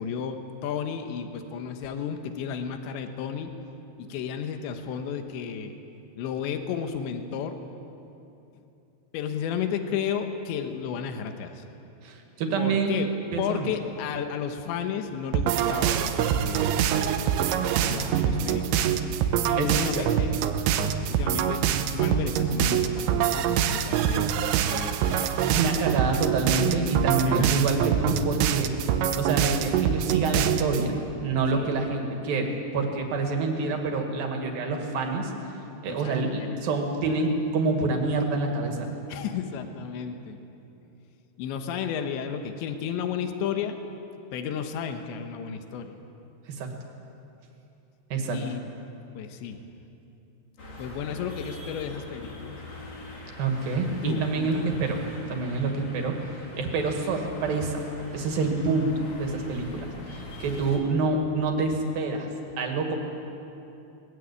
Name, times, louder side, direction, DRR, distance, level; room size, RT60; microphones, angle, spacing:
voice 1, 0.0-3.5 4.0-5.7 6.2-7.7 9.1-11.6 12.6-13.1 13.4-17.2 17.9-18.9 19.5-20.5 20.7-21.6 21.9-24.3 24.6-26.3 27.3-27.6 31.5-31.8 35.9-36.6 39.1-40.4 41.4-43.8 44.3-46.0 48.3-48.6 49.2-49.6 50.8-52.6 54.0-54.7, left 7 dB, 80° left, 6 dB, 3.5 m, -33 dB
voice 2, 12.0-13.0 13.3-13.7 19.6-20.0 25.6-28.7 29.2-35.3 35.8-38.9 46.5-46.7 48.1-48.4 53.4-55.0 55.3-57.9 58.1-62.3 62.6-63.0, right 3 dB, 55° right, 3 dB, 3.7 m, -27 dB
sound 1, 15.3-30.9, right 9 dB, 80° right, 3.2 m, -25 dB
sound 2, 50.6-60.8, left 1 dB, 35° left, 4.1 m, -43 dB
22.0 x 20.5 x 8.5 m, 2.8 s
omnidirectional pair, 5.3 m